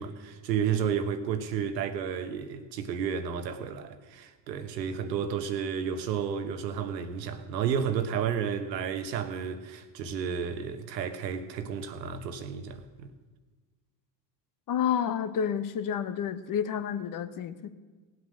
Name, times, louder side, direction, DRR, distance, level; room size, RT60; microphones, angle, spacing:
voice 1, 0.0-13.1, right 7 dB, 80° right, 1.2 m, -32 dB
voice 2, 14.7-17.7, left 8 dB, 40° left, 1.1 m, -30 dB
17.5 x 8.0 x 6.4 m
hypercardioid pair, 65°, 49 cm